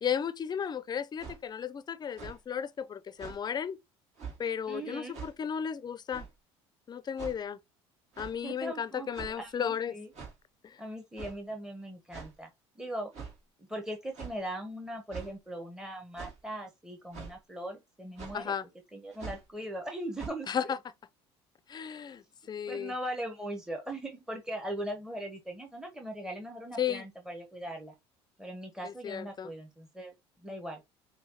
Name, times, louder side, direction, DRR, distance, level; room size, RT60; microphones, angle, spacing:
voice 1, 0.0-3.8 4.4-6.3 6.9-7.6 8.2-10.0 10.6-10.8 18.3-18.7 20.5-20.8 21.7-22.9 26.8-27.0 28.8-29.5, left 8 dB, 30° left, 0.5 m, -34 dB
sound 1, 1.2-1.4 2.1-2.4 3.2-3.4 4.2-4.4 5.1-5.3 6.1-6.3 7.2-7.4 8.1-8.4 9.1-9.5 10.1-10.4 11.2-11.4 12.1-12.3 13.1-13.4 14.1-14.4 15.1-15.3 16.1-16.4 17.1-17.3 18.2-18.4 19.1-19.5 20.2-20.3, right 6 dB, 55° right, 1.7 m, -43 dB
voice 2, 4.7-5.2 8.4-10.1 10.8-12.5 12.7-13.1 13.6-18.5 18.9-20.7 21.8-22.2 22.7-27.9 28.4-30.8, right 1 dB, 5° right, 0.8 m, -40 dB
5.5 x 2.3 x 2.8 m
hypercardioid pair, 70°, 14 cm